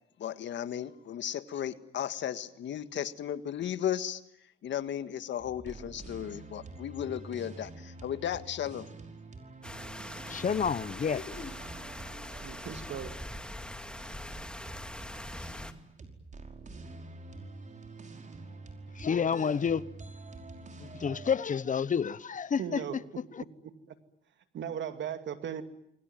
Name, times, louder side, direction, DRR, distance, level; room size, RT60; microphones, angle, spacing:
voice 1, 0.2-4.2 4.6-8.9, left 10 dB, 70° left, 1.7 m, -35 dB
sound 1, 5.4-21.4, right 3 dB, 40° right, 5.2 m, -47 dB
sound 2, 9.6-15.7, left 1 dB, 5° left, 2.2 m, -42 dB
voice 2, 10.3-11.6 18.9-19.8 20.8-23.0 23.3-23.4, left 6 dB, 40° left, 1.1 m, -30 dB
voice 3, 12.4-13.1 22.6-23.0 24.5-25.6, right 9 dB, 65° right, 2.5 m, -37 dB
28.0 x 22.5 x 9.1 m
cardioid pair, 90°, 20 cm